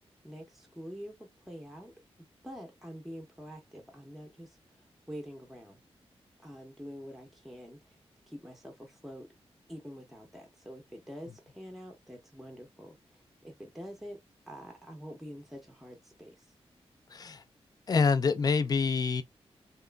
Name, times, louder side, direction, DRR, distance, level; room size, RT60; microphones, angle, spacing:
voice 1, 0.2-1.9 2.4-4.6 5.1-5.8 6.4-8.0 8.3-9.3 9.7-14.2 14.5-16.5, equal, ahead, 0.7 m, -46 dB
voice 2, 17.1-17.4 17.9-19.2, left 5 dB, 35° left, 0.4 m, -26 dB
2.9 x 2.3 x 2.2 m
wide cardioid pair, 130°, 11 cm